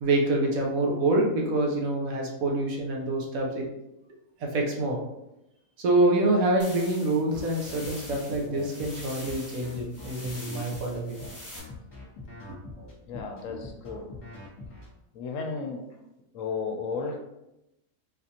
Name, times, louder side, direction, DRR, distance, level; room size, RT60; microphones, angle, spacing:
voice 1, 0.0-3.7 4.4-5.0 5.8-11.2, right 2 dB, 75° right, 0 dB, 1.2 m, -26 dB
sound 1, 6.6-11.6, left 1 dB, 10° left, 1.2 m, -44 dB
sound 2, 7.3-14.9, left 2 dB, 35° left, 1.2 m, -42 dB
voice 2, 13.1-14.1 15.1-15.8 16.3-17.2, left 4 dB, 70° left, 2 dB, 0.9 m, -33 dB
4.1 x 2.5 x 2.8 m, 0.88 s
omnidirectional pair, 1.5 m